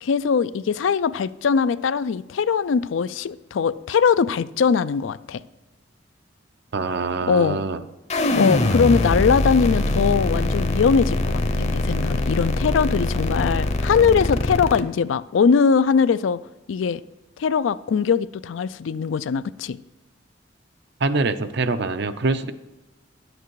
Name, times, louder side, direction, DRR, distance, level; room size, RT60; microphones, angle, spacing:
voice 1, 0.0-5.4 7.3-7.6 8.4-16.4 16.7-17.0 17.4-19.8, left 6 dB, 80° left, 16 dB, 0.4 m, -21 dB
voice 2, 6.7-7.8 21.0-22.5, right 3 dB, 60° right, 11 dB, 0.6 m, -24 dB
sound 1, 8.1-14.8, left 2 dB, 35° left, 0.7 m, -23 dB
10.5 x 7.9 x 4.7 m, 1.1 s
head